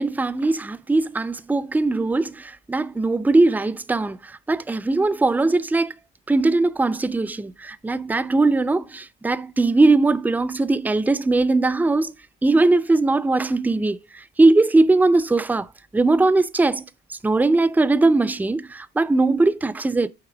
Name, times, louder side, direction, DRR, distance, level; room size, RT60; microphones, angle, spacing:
voice 1, 0.0-5.9 6.3-12.1 12.4-15.7 15.9-16.9 17.2-20.1, right 2 dB, 5° right, 0.4 m, -20 dB
5.8 x 3.7 x 4.9 m
cardioid pair, 90°, 30 cm